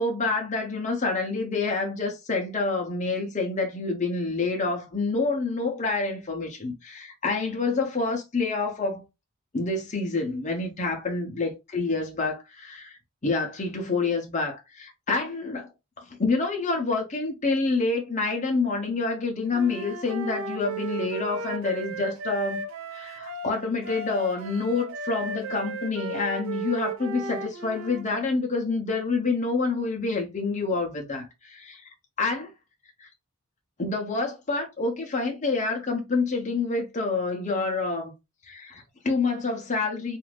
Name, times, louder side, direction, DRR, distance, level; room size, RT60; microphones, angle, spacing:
voice 1, 0.0-9.0 9.5-15.7 16.0-22.6 22.9-31.9 32.2-32.5 33.0-33.1 33.8-38.1 38.5-40.2, left 3 dB, 35° left, 0.6 m, -27 dB
Wind instrument woodwind instrument, 19.5-28.0, right 2 dB, 65° right, 0.5 m, -35 dB
2.5 x 2.4 x 3.2 m
head